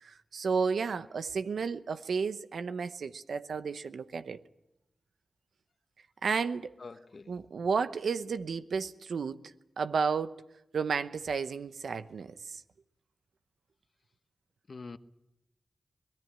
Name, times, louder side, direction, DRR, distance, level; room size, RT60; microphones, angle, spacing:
voice 1, 0.0-4.4 6.2-6.7 7.3-9.5 9.8-10.4 10.7-12.6, right 5 dB, 85° right, 0.9 m, -32 dB
voice 2, 6.8-7.4 14.7-15.0, left 4 dB, 60° left, 1.1 m, -45 dB
24.5 x 19.0 x 8.8 m
cardioid pair, 40°, 0 cm